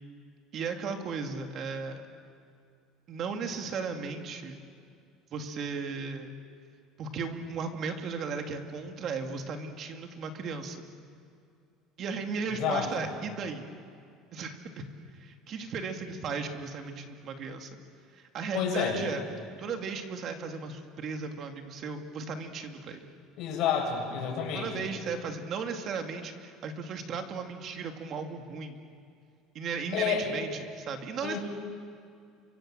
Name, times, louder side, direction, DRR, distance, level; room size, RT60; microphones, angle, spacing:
voice 1, 0.5-2.0 3.1-4.6 5.3-6.3 7.0-10.8 12.0-13.6 14.3-14.9 15.2-17.7 18.1-19.2 19.6-23.1 24.5-28.8 29.5-31.4, right 5 dB, 40° right, 5 dB, 2.5 m, -36 dB
voice 2, 12.5-13.1 18.5-19.0 23.4-24.9 29.9-30.3 31.2-31.4, left 7 dB, 50° left, 0 dB, 7.6 m, -29 dB
29.5 x 25.0 x 7.7 m, 2.3 s
cardioid pair, 155°, 0 cm